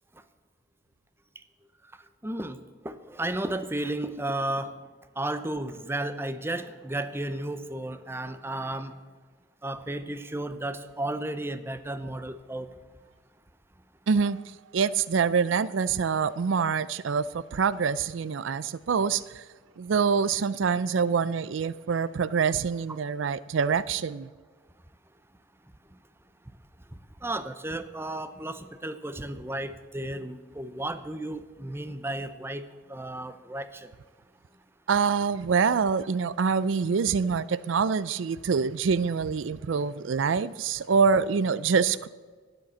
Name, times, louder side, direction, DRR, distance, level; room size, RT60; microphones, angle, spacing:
voice 1, 2.2-4.8 5.2-9.0 9.6-12.7 25.9-26.0 26.9-33.9, right 1 dB, 10° right, 0.7 m, -33 dB
voice 2, 14.1-14.4 14.7-19.4 19.8-24.3 34.9-42.1, right 5 dB, 75° right, 0.4 m, -25 dB
12.5 x 9.9 x 7.6 m
head